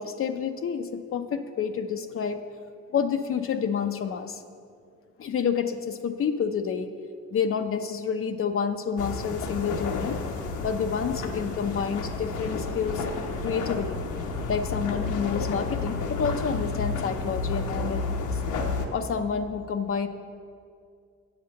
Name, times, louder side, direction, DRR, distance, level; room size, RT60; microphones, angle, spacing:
voice 1, 0.0-2.4 2.9-4.4 5.2-6.9 7.3-10.2 10.6-13.1 13.4-14.0 14.5-18.4 18.9-20.1, left 6 dB, 45° left, 8 dB, 0.5 m, -29 dB
sound 1, 9.0-18.9, left 3 dB, 80° left, 1.0 m, -31 dB
7.8 x 5.8 x 7.6 m, 2.3 s
cardioid pair, 90°, 30 cm